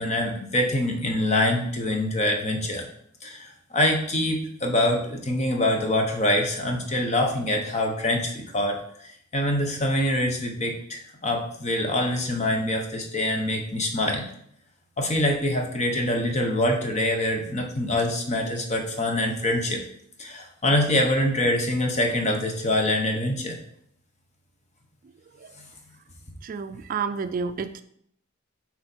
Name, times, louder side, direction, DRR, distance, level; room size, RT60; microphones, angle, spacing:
voice 1, 0.0-2.9 3.2-14.2 15.0-19.8 20.2-23.6, left 1 dB, 35° left, 3 dB, 1.2 m, -25 dB
voice 2, 26.4-27.8, right 5 dB, 45° right, 10 dB, 0.4 m, -30 dB
8.1 x 4.3 x 4.5 m, 0.69 s
head